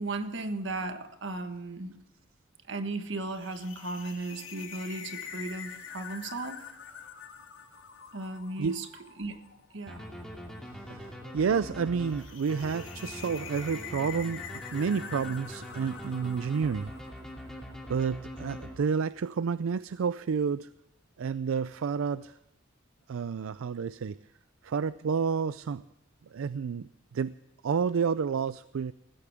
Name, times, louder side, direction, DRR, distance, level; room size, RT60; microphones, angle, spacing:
voice 1, 0.0-1.9 2.7-6.6 8.1-8.9 9.2-9.4 9.7-10.1, right 2 dB, 65° right, 1.5 m, -36 dB
sound 1, 3.3-17.6, left 7 dB, 70° left, 2.4 m, -46 dB
sound 2, 9.9-19.2, equal, 5° left, 2.6 m, -43 dB
voice 2, 10.9-16.9 17.9-20.7 21.2-22.3 23.1-24.2 24.6-25.8 26.3-27.3 27.6-28.9, right 6 dB, 85° right, 0.4 m, -30 dB
20.0 x 15.0 x 3.5 m
head